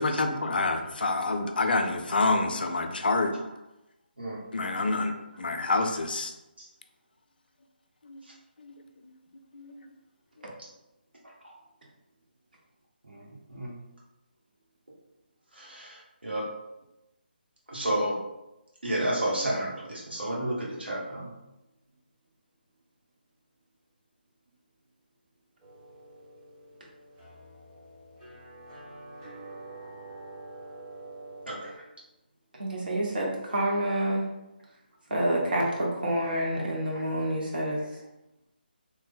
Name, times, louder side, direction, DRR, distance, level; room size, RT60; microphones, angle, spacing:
voice 1, 0.0-3.3 4.5-6.3 8.0-8.2 8.6-8.7 9.0-9.1 9.5-9.9 10.4-10.5, left 3 dB, 60° left, 6 dB, 0.4 m, -28 dB
voice 2, 13.1-13.7 15.5-16.5 17.7-18.1 18.8-21.3 31.4-31.8 36.9-37.0, right 1 dB, 80° right, -4 dB, 1.3 m, -31 dB
sound 1, 25.6-31.8, right 2 dB, 15° right, 0.8 m, -46 dB
voice 3, 32.6-34.3 35.1-37.8, right 1 dB, 60° right, -3 dB, 1.1 m, -28 dB
3.2 x 2.1 x 3.6 m, 0.94 s
figure-of-eight pair, 150°, 6 cm